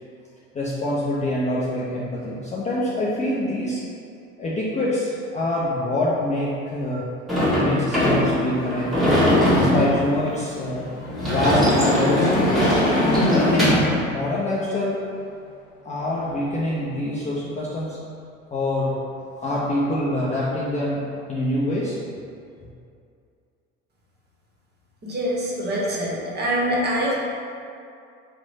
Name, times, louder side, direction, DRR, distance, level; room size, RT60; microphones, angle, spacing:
voice 1, 0.5-3.8 4.4-7.1 7.5-9.1 9.5-10.9 11.2-12.5 13.2-15.1 15.8-18.0 18.5-19.0 19.4-21.0 21.3-22.0, left 1 dB, 20° left, -7 dB, 0.4 m, -25 dB
Sliding door / Slam, 7.3-13.9, equal, ahead, 1.2 m, -21 dB
sound 1, 10.9-14.5 15.0-15.1 16.2-17.0, left 2 dB, 80° left, 0.6 m, -26 dB
voice 2, 25.0-27.1, equal, 25° right, -4 dB, 0.9 m, -24 dB
3.0 x 2.1 x 4.0 m, 2.5 s
hypercardioid pair, 70°, 38 cm